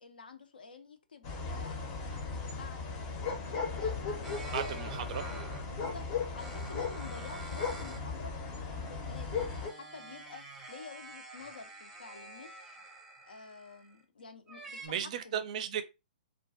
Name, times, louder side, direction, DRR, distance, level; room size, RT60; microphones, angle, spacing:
voice 1, 0.0-4.7 5.8-6.1 6.3-12.8 13.2-14.8 15.2-15.4, left 4 dB, 75° left, 0.5 m, -50 dB
sound 1, 1.2-9.7, left 4 dB, 35° left, 0.6 m, -37 dB
sound 2, 4.2-5.8 6.3-8.1 8.5-14.0 14.5-14.9, right 2 dB, 10° right, 0.6 m, -48 dB
voice 2, 4.5-5.3 14.8-15.8, right 9 dB, 45° right, 0.4 m, -35 dB
2.4 x 2.2 x 2.3 m
figure-of-eight pair, 125°, 5 cm